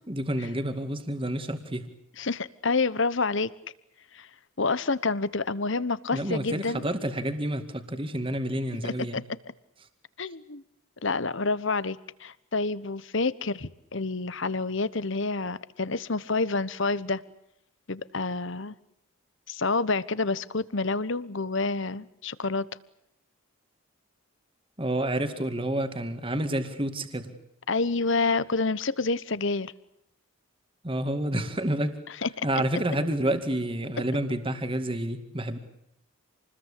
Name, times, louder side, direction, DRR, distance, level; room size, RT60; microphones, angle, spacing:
voice 1, 0.1-1.9 6.1-9.2 24.8-27.3 30.8-32.0 32.4-35.6, right 1 dB, 25° right, 8 dB, 2.2 m, -29 dB
voice 2, 2.2-3.5 4.1-4.3 4.6-6.9 8.8-9.2 10.2-10.6 11.0-17.2 17.9-18.8 19.5-22.7 27.7-29.7 32.2-32.5, left 3 dB, 60° left, 17 dB, 1.1 m, -28 dB
28.5 x 21.0 x 8.4 m, 0.78 s
head